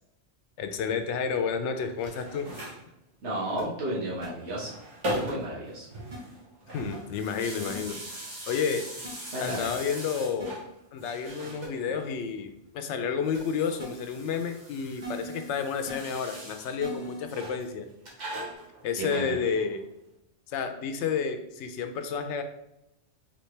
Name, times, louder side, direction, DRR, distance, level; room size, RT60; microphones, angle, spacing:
voice 1, 0.6-2.5 6.7-8.0 8.5-8.8 9.4-10.6 10.9-17.9 18.8-19.8 20.5-22.4, left 6 dB, 80° left, 7 dB, 0.9 m, -30 dB
sound 1, 1.9-2.8 4.3-5.6 5.9-10.7 11.0-12.1 13.1-16.8 17.3-17.7 18.2-19.8, right 1 dB, 90° right, 1.7 m, -40 dB
sound 2, 2.0-2.2 3.6-3.7 4.2-4.3 5.3-5.4 6.1-6.2 7.6-7.7 9.0-9.1 10.4-10.5 11.2-11.3 11.6-11.7 13.3-13.4 13.8-13.9 15.0-15.4 15.9-16.0 16.8-17.2 18.0-18.2, right 1 dB, 40° right, 1.2 m, -39 dB
voice 2, 3.2-4.8 5.2-5.9 9.3-9.7 19.0-19.3, right 1 dB, 75° right, -6 dB, 1.7 m, -33 dB
4.2 x 3.8 x 3.2 m, 0.86 s
omnidirectional pair, 1.2 m